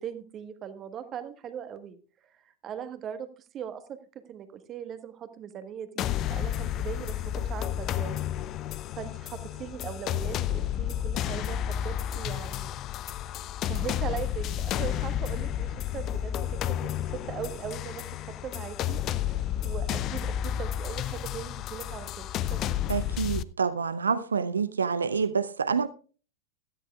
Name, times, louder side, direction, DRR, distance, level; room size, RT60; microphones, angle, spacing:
voice 1, 0.0-2.0 2.4-8.2 8.5-8.7 9.0-12.7 13.6-23.0, right 8 dB, 30° right, 1.4 m, -40 dB
sound 1, 6.0-23.4, left 11 dB, 35° left, 0.5 m, -31 dB
voice 2, 22.9-25.9, right 5 dB, 75° right, 0.6 m, -27 dB
16.5 x 13.0 x 2.4 m
figure-of-eight pair, 90°, 0 cm